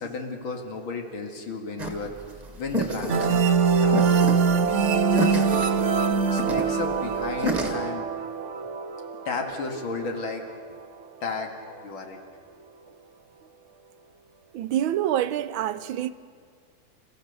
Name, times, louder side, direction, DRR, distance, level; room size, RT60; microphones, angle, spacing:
voice 1, 0.0-2.2 2.6-3.4 3.8-4.0 4.9-5.4 6.3-8.1 9.3-10.4 11.2-11.5 11.8-12.2, left 4 dB, 75° left, 2.8 m, -33 dB
sound 1, 1.8-7.7, right 1 dB, 20° right, 2.0 m, -30 dB
sound 2, 3.1-10.5, right 5 dB, 60° right, 0.7 m, -24 dB
voice 2, 14.5-16.1, right 11 dB, 80° right, 1.5 m, -26 dB
29.5 x 15.0 x 6.9 m
omnidirectional pair, 2.3 m